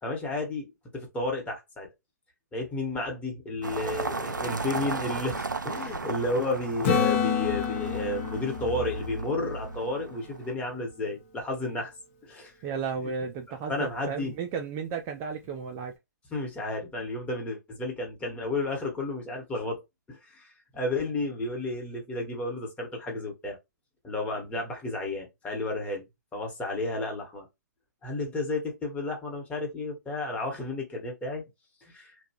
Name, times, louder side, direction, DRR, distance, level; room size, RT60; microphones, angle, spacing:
voice 1, 0.0-1.9 2.5-11.9 12.2-12.5 13.7-14.3 16.3-19.8 20.1-23.6 24.0-26.1 26.3-27.5 28.0-31.4 31.8-32.1, left 2 dB, 10° left, 1.1 m, -32 dB
sound 1, 3.6-10.5, right 3 dB, 90° right, 0.4 m, -35 dB
Acoustic guitar / Strum, 6.8-10.6 15.5-15.6, left 7 dB, 40° left, 0.8 m, -30 dB
voice 2, 12.6-15.9, right 6 dB, 25° right, 0.4 m, -34 dB
2.9 x 2.3 x 2.8 m
figure-of-eight pair, 125°, 10 cm